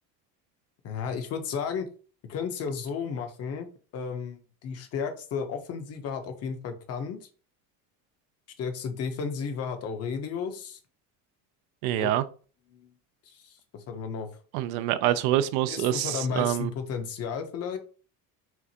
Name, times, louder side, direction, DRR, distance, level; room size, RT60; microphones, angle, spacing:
voice 1, 0.8-1.9 2.2-3.7 3.9-7.3 8.6-10.8 12.0-12.1 12.7-12.9 13.3-14.3 15.0-15.2 15.7-17.8, left 6 dB, 40° left, 0.7 m, -33 dB
voice 2, 11.8-12.2 14.5-16.7, right 13 dB, 75° right, 0.5 m, -26 dB
5.7 x 2.4 x 2.8 m
cardioid pair, 155°, 38 cm